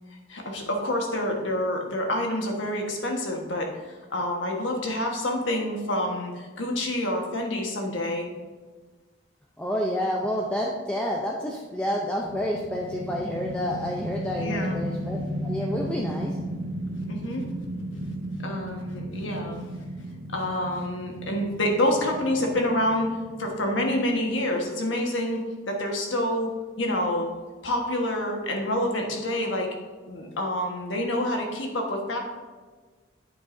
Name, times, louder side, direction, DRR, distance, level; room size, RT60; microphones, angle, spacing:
voice 1, 0.3-8.3 14.4-14.8 17.1-17.5 18.4-19.6 20.3-26.5 26.8-27.3 27.6-29.7 30.1-32.2, left 1 dB, 85° left, 1 dB, 1.4 m, -27 dB
voice 2, 9.6-16.4, left 1 dB, 5° left, -2 dB, 0.5 m, -29 dB
sound 1, 12.2-24.4, right 1 dB, 70° right, 1.0 m, -35 dB
8.7 x 7.6 x 2.6 m, 1.4 s
head